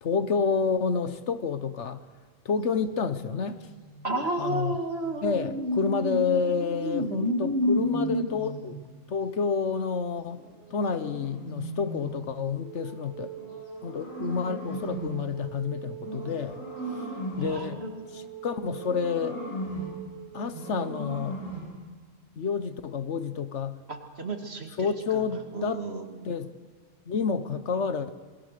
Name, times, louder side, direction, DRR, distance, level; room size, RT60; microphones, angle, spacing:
voice 1, 0.0-2.0 2.4-3.7 4.4-4.8 5.2-8.8 9.1-10.4 10.7-13.3 13.8-16.6 17.4-17.9 18.1-19.4 20.3-21.4 22.4-23.8 24.8-25.9 26.2-26.5 27.1-28.1, left 5 dB, 65° left, 1.2 m, -29 dB
sound 1, 3.0-5.4 7.1-8.9 10.3-12.3 13.3-15.3 16.0-17.7 18.6-20.0 20.5-21.8, right 1 dB, 90° left, 7.3 m, -39 dB
voice 2, 4.0-8.3 17.4-18.3 23.9-25.3 25.5-26.3, equal, 55° right, 2.5 m, -30 dB
Wind instrument woodwind instrument, 12.6-21.1, right 12 dB, 70° right, 3.1 m, -44 dB
26.5 x 22.5 x 6.7 m
omnidirectional pair, 1.3 m